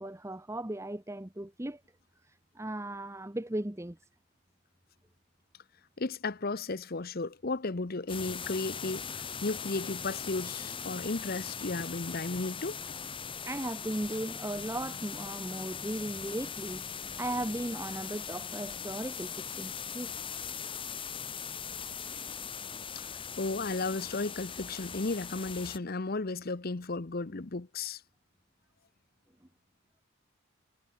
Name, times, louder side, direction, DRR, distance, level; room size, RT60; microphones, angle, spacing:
voice 1, 0.0-1.8 2.2-4.0 13.5-20.1 22.6-22.7, right 1 dB, 10° right, 0.9 m, -37 dB
voice 2, 6.0-12.8 23.0-23.1 23.4-28.0, left 3 dB, 45° left, 0.8 m, -34 dB
sound 1, 8.1-25.8, left 6 dB, 25° left, 2.4 m, -40 dB
head